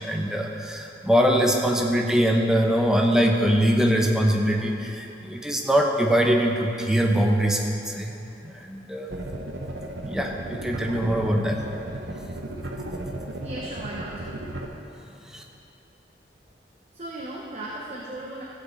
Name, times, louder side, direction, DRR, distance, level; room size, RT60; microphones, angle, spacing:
voice 1, 0.0-7.6 7.9-8.1 8.4-9.1 10.0-11.6 15.2-15.4, equal, 5° right, 0 dB, 0.8 m, -22 dB
sound 1, 9.1-14.7, right 1 dB, 70° right, 1.0 m, -34 dB
voice 2, 13.4-14.3 16.9-18.4, right 1 dB, 35° right, -4 dB, 1.0 m, -36 dB
14.5 x 8.0 x 4.0 m, 2.9 s
head